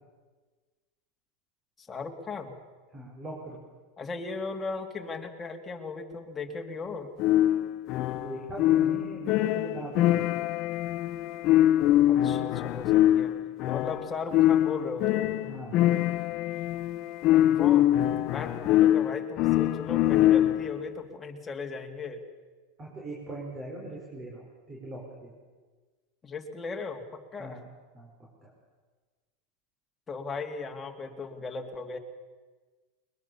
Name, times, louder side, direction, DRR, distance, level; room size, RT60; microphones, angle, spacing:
voice 1, 1.8-2.5 4.0-7.1 12.1-13.3 13.7-15.3 17.3-18.0 18.3-22.2 26.2-27.0 27.3-27.6 30.1-32.0, left 4 dB, 15° left, 2 dB, 2.6 m, -37 dB
voice 2, 2.9-3.7 8.1-10.5 15.4-16.0 18.4-18.5 22.8-25.3 27.4-27.6 27.9-28.5, right 2 dB, 25° right, -2 dB, 5.2 m, -41 dB
sound 1, 7.2-20.8, left 13 dB, 45° left, 0.8 m, -24 dB
21.5 x 21.0 x 7.1 m, 1.4 s
supercardioid pair, 125°, 0 cm